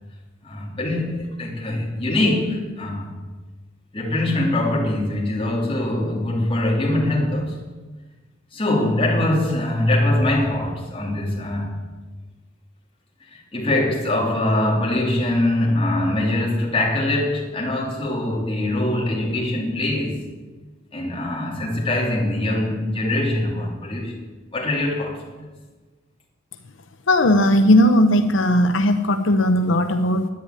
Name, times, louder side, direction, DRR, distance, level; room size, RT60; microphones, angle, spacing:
voice 1, 0.4-3.1 3.9-7.6 8.5-11.7 13.2-20.3 20.9-24.2 24.5-25.3, left 1 dB, 30° left, 3.3 m, -23 dB
voice 2, 27.1-30.3, left 1 dB, 85° left, 0.8 m, -17 dB
10.5 x 9.7 x 9.4 m
head